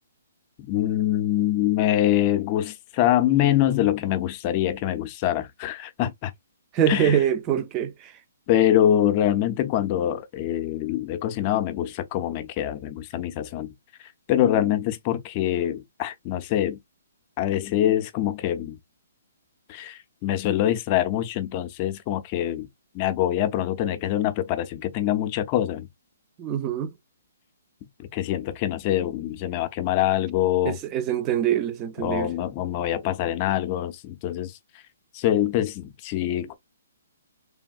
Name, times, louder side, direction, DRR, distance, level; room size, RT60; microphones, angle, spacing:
voice 1, 0.7-6.3 6.9-7.2 8.5-13.7 14.3-16.8 17.4-18.8 19.7-22.7 22.9-25.9 28.0-30.8 32.0-34.6 35.1-36.5, left 12 dB, 30° left, 0.5 m, -24 dB
voice 2, 6.7-8.1 26.4-26.9 30.6-32.3, right 9 dB, 25° right, 0.4 m, -24 dB
3.3 x 2.2 x 2.4 m
hypercardioid pair, 150°, 0 cm